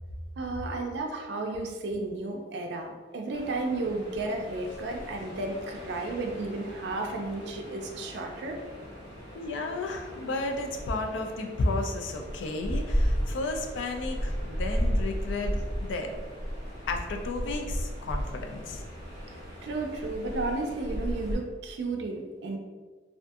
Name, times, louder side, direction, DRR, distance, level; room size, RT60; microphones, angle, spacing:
voice 1, 0.4-8.6 19.6-22.6, right 2 dB, 65° right, 2 dB, 0.3 m, -33 dB
sound 1, 3.3-21.4, equal, 30° left, 0.9 m, -35 dB
voice 2, 9.3-16.1 16.9-18.8, left 2 dB, 80° left, 4 dB, 0.4 m, -33 dB
2.6 x 2.4 x 2.3 m, 1.4 s
head